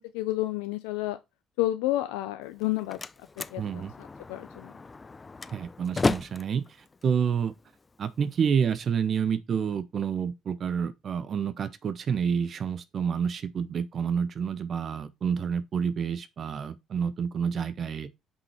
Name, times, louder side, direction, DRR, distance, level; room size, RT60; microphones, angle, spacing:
voice 1, 0.1-1.2 1.6-3.0 3.5-4.7, left 16 dB, 80° left, 0.4 m, -30 dB
Slam, 2.4-8.4, left 3 dB, 30° left, 0.5 m, -34 dB
voice 2, 3.6-3.9 5.5-7.5 8.0-18.1, right 7 dB, 55° right, 0.8 m, -29 dB
5.6 x 5.4 x 4.4 m
hypercardioid pair, 50°, 0 cm